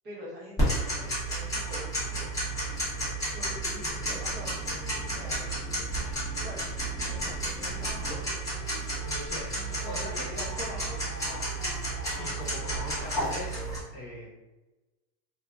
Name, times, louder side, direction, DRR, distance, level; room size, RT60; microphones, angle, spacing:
voice 1, 0.0-2.5 3.3-4.6 5.1-5.7 6.4-6.7 7.0-8.4 9.5-11.6 12.4-12.7, equal, 20° right, -7 dB, 0.9 m, -45 dB
Tick-tock, 0.6-13.8, right 1 dB, 5° left, 0.9 m, -32 dB
voice 2, 9.0-10.4 12.2-14.3, left 1 dB, 35° left, -7 dB, 1.0 m, -42 dB
2.7 x 2.4 x 2.3 m, 1.1 s
supercardioid pair, 140°, 49 cm